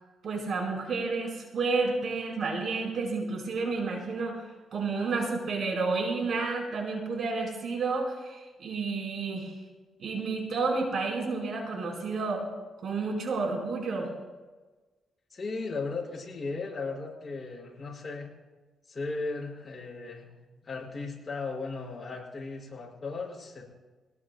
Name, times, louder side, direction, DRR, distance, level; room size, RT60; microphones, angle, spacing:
voice 1, 0.2-4.4 4.7-9.5 10.0-12.4 12.8-14.1, right 4 dB, 65° right, -1 dB, 4.6 m, -30 dB
voice 2, 15.3-18.3 18.9-20.3 20.6-23.6, left 3 dB, 35° left, -2 dB, 5.9 m, -36 dB
22.0 x 19.0 x 2.3 m, 1.2 s
cardioid pair, 80°, 0 cm